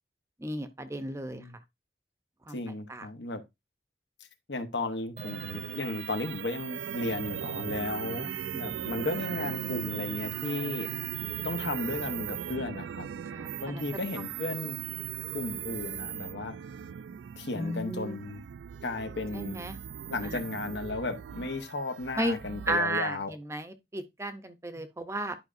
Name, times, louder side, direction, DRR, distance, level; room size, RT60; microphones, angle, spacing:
voice 1, 0.4-1.4 2.5-2.6 2.9-3.1 13.3-13.8 17.5-18.2 19.3-19.8 20.2-20.4 22.2-22.4 22.7-25.4, right 1 dB, 15° right, 0.6 m, -33 dB
voice 2, 2.5-3.4 4.5-10.9 11.4-13.1 13.6-14.8 15.3-16.5 17.4-18.4 18.8-19.6 20.1-23.3, left 2 dB, 80° left, 1.0 m, -34 dB
sound 1, 5.2-22.8, right 10 dB, 85° right, 0.3 m, -38 dB
10.5 x 4.9 x 2.6 m
head